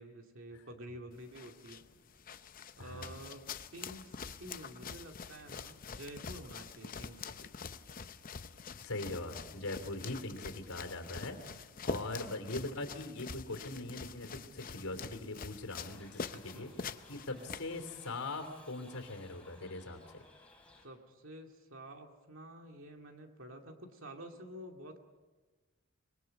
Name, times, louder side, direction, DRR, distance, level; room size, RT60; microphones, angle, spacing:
voice 1, 0.0-1.8 2.8-3.4 3.7-7.5 11.9-12.2 16.3-16.7 17.3-17.5 20.8-25.0, right 1 dB, 60° right, 3 dB, 2.3 m, -50 dB
sound 1, 1.1-18.1, left 5 dB, 40° left, 0.6 m, -45 dB
voice 2, 2.8-3.2 8.8-20.0, left 2 dB, 80° left, 6 dB, 3.2 m, -41 dB
Shout / Livestock farm animals working animals, 15.9-20.9, left 2 dB, 5° left, 3.5 m, -60 dB
25.5 x 21.5 x 5.4 m, 1.3 s
head